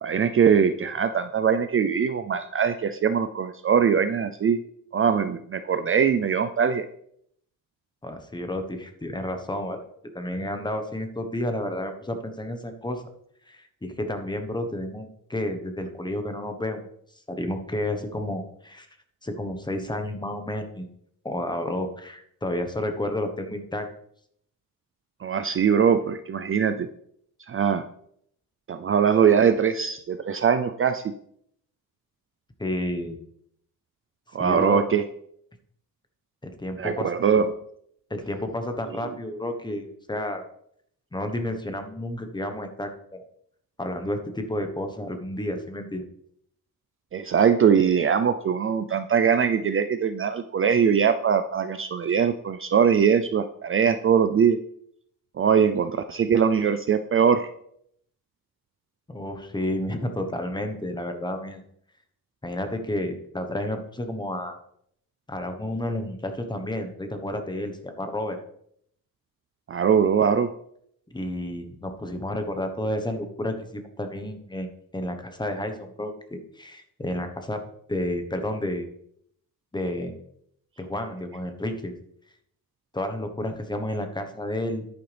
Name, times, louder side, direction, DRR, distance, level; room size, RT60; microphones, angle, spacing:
voice 1, 0.0-4.6 4.9-6.8 25.2-26.9 27.5-27.8 28.7-31.0 34.3-35.0 36.8-37.5 47.1-54.6 55.4-57.5 69.7-70.5, right 7 dB, 40° right, 10 dB, 0.5 m, -22 dB
voice 2, 8.0-9.8 10.1-13.0 13.5-16.8 17.3-18.9 19.2-20.9 21.2-23.9 32.6-33.2 34.4-34.9 36.4-37.1 38.1-40.4 41.1-43.2 43.8-46.0 59.1-61.6 62.4-64.6 65.3-68.4 71.1-77.6 77.9-78.9 79.7-80.2 80.8-81.9 82.9-84.8, left 1 dB, 10° left, 6 dB, 1.1 m, -31 dB
10.5 x 9.1 x 3.4 m, 0.69 s
wide cardioid pair, 145°, 35 cm